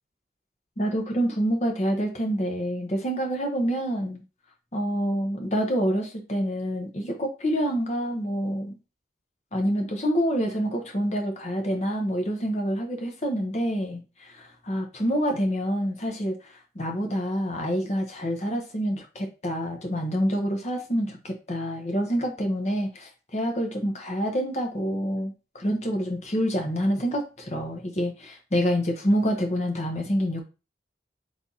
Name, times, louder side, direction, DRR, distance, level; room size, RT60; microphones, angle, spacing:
voice 1, 0.8-4.2 4.7-8.8 9.5-30.4, equal, 40° left, 2 dB, 0.9 m, -27 dB
3.3 x 2.6 x 3.9 m, 0.30 s
head